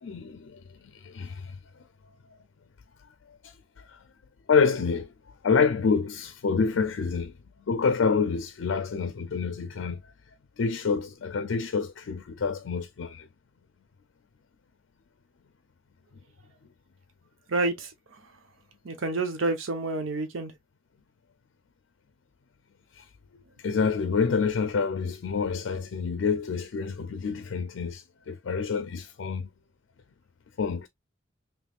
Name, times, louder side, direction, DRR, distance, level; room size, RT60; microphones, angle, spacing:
voice 1, 0.0-1.6 3.3-4.0 4.5-5.1 5.4-7.3 7.7-10.0 10.6-13.3 22.9-23.1 23.6-29.5 30.6-30.9, left 5 dB, 70° left, 0.4 m, -27 dB
voice 2, 17.5-17.9 18.8-20.5, right 2 dB, 85° right, 0.7 m, -28 dB
3.4 x 3.0 x 2.3 m
head